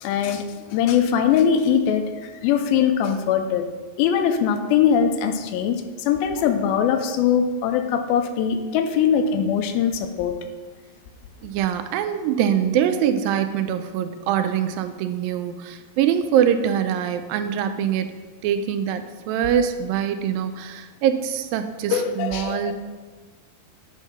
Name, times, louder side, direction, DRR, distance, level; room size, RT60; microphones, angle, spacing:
voice 1, 0.0-3.6 4.0-10.3 21.9-22.7, left 8 dB, 90° left, 7 dB, 2.5 m, -21 dB
voice 2, 11.4-18.2 18.4-22.7, right 9 dB, 85° right, 9 dB, 2.3 m, -23 dB
8.7 x 4.6 x 5.8 m, 1.3 s
omnidirectional pair, 4.2 m